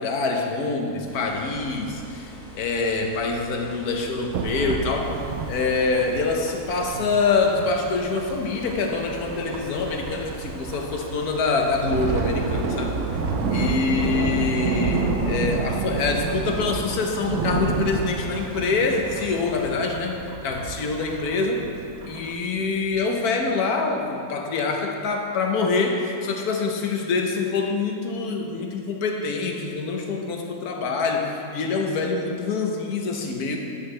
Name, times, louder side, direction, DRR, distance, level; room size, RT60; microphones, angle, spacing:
voice 1, 0.0-5.1 5.5-12.9 13.5-21.7 22.0-33.6, left 4 dB, 70° left, 2 dB, 1.3 m, -25 dB
sound 1, 1.1-19.7, right 1 dB, 40° left, 2.0 m, -44 dB
Thunderstorm / Rain, 4.3-22.4, right 5 dB, 75° right, 0.5 m, -37 dB
Thunder, 11.7-20.7 21.1-21.3 21.7-21.9 22.5-23.0, right 4 dB, 60° right, 0.9 m, -27 dB
9.9 x 7.8 x 3.2 m, 2.6 s
omnidirectional pair, 1.7 m